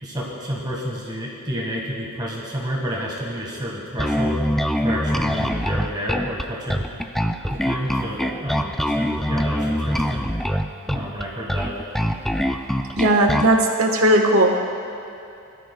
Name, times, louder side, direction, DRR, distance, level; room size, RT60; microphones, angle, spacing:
voice 1, 0.0-4.4 4.8-6.9 7.5-10.3 10.9-11.7, equal, 20° right, -3 dB, 1.6 m, -30 dB
Bass guitar, 4.0-13.6, equal, ahead, 0.4 m, -24 dB
voice 2, 13.0-14.6, right 1 dB, 70° right, 2 dB, 1.3 m, -17 dB
21.0 x 13.0 x 2.3 m, 2.7 s
head